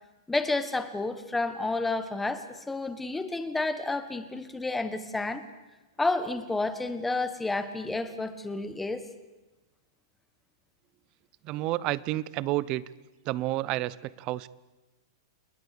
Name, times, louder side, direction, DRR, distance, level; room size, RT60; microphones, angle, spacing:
voice 1, 0.3-5.5 6.0-9.1, left 2 dB, 5° left, 10 dB, 1.5 m, -30 dB
voice 2, 11.4-12.8 13.2-14.5, right 16 dB, 30° right, 20 dB, 0.8 m, -30 dB
30.0 x 20.5 x 6.8 m, 1.1 s
hypercardioid pair, 160°, 2 cm